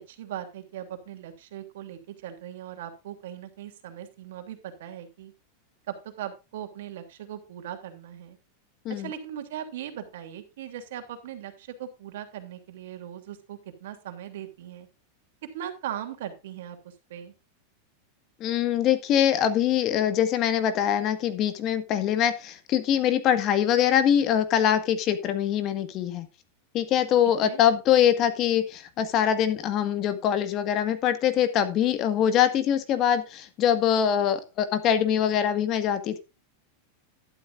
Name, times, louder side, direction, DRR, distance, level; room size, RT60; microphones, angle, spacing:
voice 1, 0.0-5.3 5.9-8.4 8.9-14.9 15.5-17.3 27.4-27.6, right 10 dB, 75° right, 7 dB, 2.9 m, -39 dB
voice 2, 18.4-26.3 26.7-36.2, left 9 dB, 35° left, 10 dB, 1.7 m, -23 dB
12.0 x 12.0 x 2.5 m, 0.27 s
supercardioid pair, 150°, 0 cm